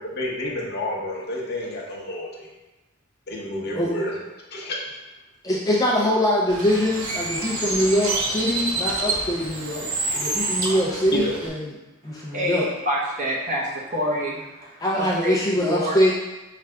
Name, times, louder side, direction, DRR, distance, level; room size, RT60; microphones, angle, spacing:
voice 1, 0.0-2.5 3.3-4.2 4.5-4.8 11.1-11.3, left 1 dB, 50° left, -2 dB, 0.8 m, -29 dB
voice 2, 5.4-9.9 10.1-11.6 12.0-12.7 14.8-16.1, equal, 15° left, -6 dB, 0.5 m, -23 dB
Bird, 6.5-11.5, right 2 dB, 85° right, 0.8 m, -28 dB
voice 3, 12.1-16.0, equal, 40° right, -5 dB, 1.0 m, -28 dB
5.8 x 2.4 x 3.3 m, 1.1 s
head